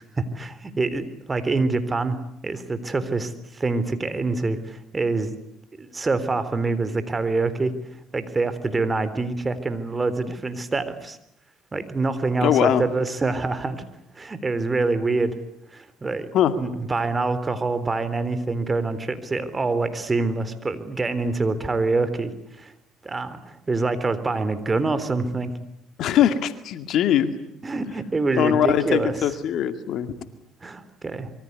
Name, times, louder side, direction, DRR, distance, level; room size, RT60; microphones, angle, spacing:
voice 1, 0.2-2.2 2.4-5.3 5.8-7.8 8.1-11.2 11.7-13.8 14.2-15.3 15.7-16.3 16.6-22.7 23.0-25.5 27.6-29.3 30.6-31.3, right 3 dB, 25° right, 12 dB, 3.6 m, -25 dB
voice 2, 12.4-12.8 16.3-16.5 26.0-27.3 28.4-30.1, left 10 dB, 65° left, 9 dB, 2.2 m, -21 dB
26.0 x 23.5 x 9.7 m, 0.79 s
hypercardioid pair, 60°, 0 cm